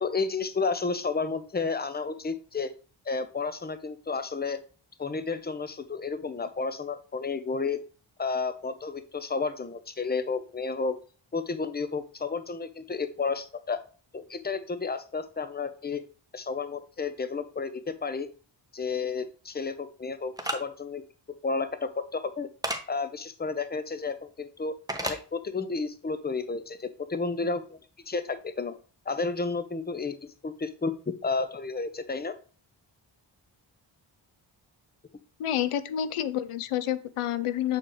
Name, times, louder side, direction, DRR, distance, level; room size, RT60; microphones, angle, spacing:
voice 1, 0.0-2.7 3.1-4.6 5.0-7.8 8.2-11.0 11.3-13.8 14.1-16.0 16.3-18.3 18.7-21.0 21.4-22.5 22.9-24.7 25.0-27.8 28.1-28.7 29.1-30.9 31.2-32.4, left 4 dB, 20° left, 11 dB, 0.7 m, -31 dB
sound 1, 20.4-20.6 22.6-22.8 24.9-25.2, right 1 dB, 10° right, 1.1 m, -30 dB
voice 2, 35.4-37.8, left 11 dB, 90° left, 14 dB, 0.6 m, -29 dB
7.7 x 4.5 x 3.1 m, 0.38 s
cardioid pair, 55°, 49 cm